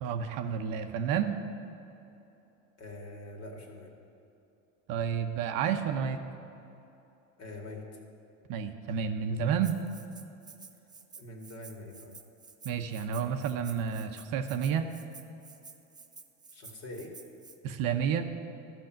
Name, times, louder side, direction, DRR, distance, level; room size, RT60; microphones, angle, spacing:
voice 1, 0.0-1.4 4.9-6.2 8.5-9.8 12.6-14.9 17.6-18.3, right 7 dB, 60° right, 7 dB, 0.9 m, -30 dB
voice 2, 2.8-4.0 7.4-7.8 11.2-12.2 16.5-17.2, left 2 dB, 40° left, 1 dB, 2.2 m, -44 dB
Rattle (instrument), 9.6-17.6, right 4 dB, 10° right, 0.5 m, -51 dB
12.0 x 6.3 x 7.6 m, 2.9 s
supercardioid pair, 105°, 39 cm